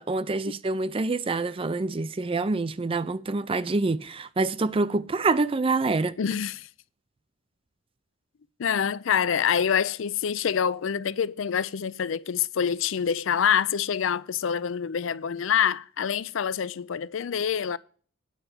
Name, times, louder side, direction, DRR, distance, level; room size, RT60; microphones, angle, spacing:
voice 1, 0.0-6.2, right 3 dB, 25° right, 0.4 m, -26 dB
voice 2, 6.2-6.7 8.6-17.8, left 8 dB, 70° left, 0.4 m, -26 dB
9.0 x 5.7 x 6.6 m
head